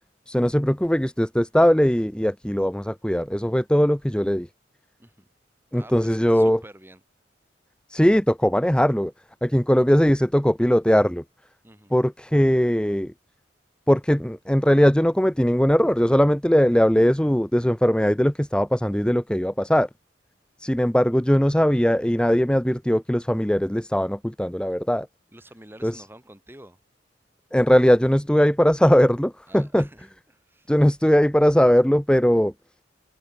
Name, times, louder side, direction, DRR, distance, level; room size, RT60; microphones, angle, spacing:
voice 1, 0.3-4.5 5.7-6.6 7.9-9.1 9.4-11.2 11.9-13.1 13.9-19.9 20.6-25.1 25.8-25.9 27.5-29.9 30.7-32.5, equal, 5° left, 0.8 m, -20 dB
voice 2, 5.7-7.0 11.6-11.9 25.3-26.8 29.5-30.7, right 1 dB, 10° right, 5.8 m, -48 dB
head